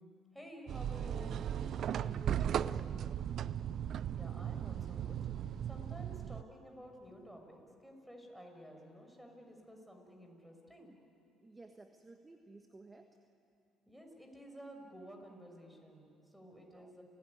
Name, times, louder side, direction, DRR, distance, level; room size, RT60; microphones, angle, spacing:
voice 1, 0.0-1.4 4.1-5.2 5.6-10.9 13.9-17.0, equal, 5° right, 3 dB, 6.3 m, -53 dB
sound 1, 0.7-6.4, right 9 dB, 60° right, 0.5 m, -37 dB
voice 2, 1.9-3.2 11.4-13.1 16.6-16.9, right 2 dB, 20° right, 5 dB, 1.5 m, -54 dB
30.0 x 17.5 x 9.8 m, 2.7 s
supercardioid pair, 75°, 0 cm